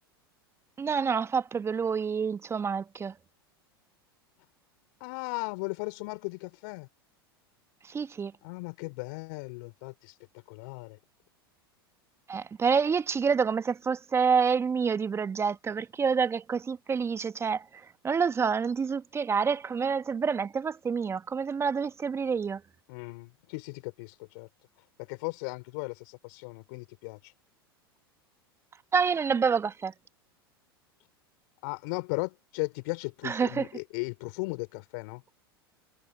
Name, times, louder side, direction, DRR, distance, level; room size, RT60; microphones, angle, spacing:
voice 1, 0.8-3.1 7.8-8.3 12.3-22.6 28.9-29.9 33.2-33.7, right 6 dB, 20° right, 1.2 m, -28 dB
voice 2, 5.0-6.9 8.4-10.2 10.5-11.0 22.9-24.5 25.0-27.3 31.6-35.2, left 29 dB, 55° left, 4.2 m, -37 dB
figure-of-eight pair, 85°, 13 cm